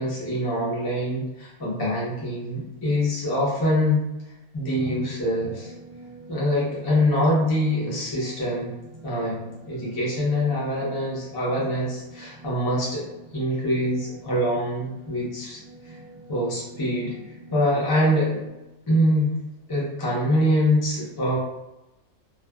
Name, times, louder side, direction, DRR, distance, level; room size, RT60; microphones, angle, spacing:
voice 1, 0.0-4.0 4.5-5.7 6.3-8.7 9.0-9.4 9.7-13.1 13.3-16.0 16.3-17.1 17.5-18.4 18.9-19.3 19.7-21.4, equal, 25° left, -7 dB, 0.6 m, -24 dB
sound 1, 5.3-18.5, right 2 dB, 40° right, 0.5 m, -46 dB
2.5 x 2.3 x 2.2 m, 0.96 s
omnidirectional pair, 1.4 m